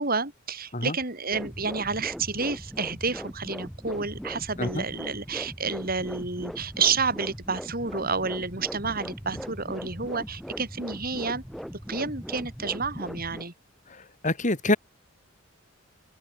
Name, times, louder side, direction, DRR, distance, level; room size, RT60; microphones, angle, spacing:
voice 1, 0.0-11.4 11.9-13.5, right 4 dB, 45° right, 6.7 m, -30 dB
sound 1, 1.3-13.4, equal, ahead, 6.3 m, -39 dB
voice 2, 14.2-14.8, left 2 dB, 35° left, 3.6 m, -25 dB
open air
head